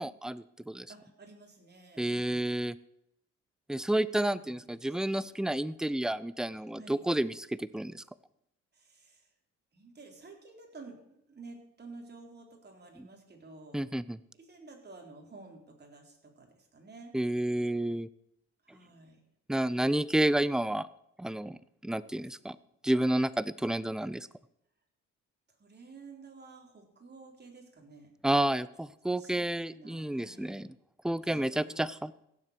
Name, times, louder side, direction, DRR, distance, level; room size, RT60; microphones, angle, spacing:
voice 1, 0.0-0.9 2.0-2.7 3.7-8.0 13.7-14.2 17.1-18.1 19.5-20.9 21.2-22.6 22.8-24.3 28.2-30.7 31.0-32.1, right 1 dB, ahead, 17 dB, 0.5 m, -30 dB
voice 2, 0.9-2.5 4.4-5.3 6.7-7.1 8.7-9.3 9.7-13.9 14.3-17.1 18.6-19.2 25.6-28.1 29.1-30.6 31.2-31.8, right 3 dB, 35° right, 1 dB, 3.9 m, -52 dB
16.0 x 7.6 x 6.8 m, 0.77 s
cardioid pair, 90°, 30 cm